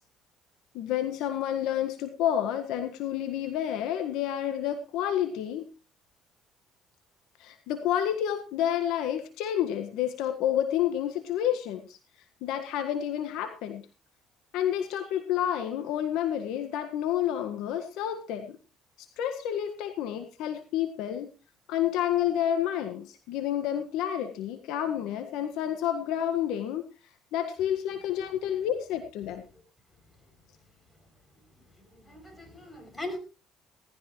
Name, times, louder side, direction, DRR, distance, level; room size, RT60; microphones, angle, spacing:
voice 1, 0.7-5.7 7.4-12.0 12.4-13.8 14.5-18.6 19.2-21.3 21.7-26.8 27.3-29.4, left 10 dB, 75° left, 7 dB, 1.6 m, -29 dB
voice 2, 31.8-33.2, left 1 dB, 20° left, 5 dB, 6.9 m, -40 dB
18.0 x 14.0 x 3.2 m, 0.34 s
supercardioid pair, 70°, 0 cm